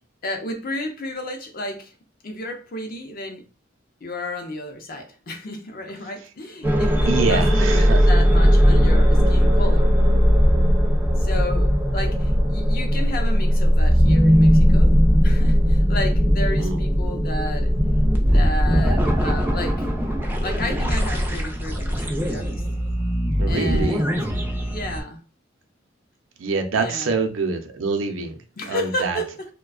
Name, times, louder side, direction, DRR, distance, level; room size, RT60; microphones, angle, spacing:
voice 1, 0.2-1.9 2.2-3.4 4.0-9.9 11.1-14.9 15.2-17.7 18.3-19.9 20.4-22.6 23.5-24.2 24.7-25.2 26.7-27.1 28.6-29.5, left 1 dB, 50° left, 0.6 m, -32 dB
sound 1, 6.6-25.0, equal, 10° right, 0.4 m, -18 dB
voice 2, 7.0-8.1 16.6-16.8 23.4-24.0 26.4-28.4 28.7-29.2, right 4 dB, 85° right, 0.5 m, -25 dB
2.4 x 2.2 x 2.3 m
head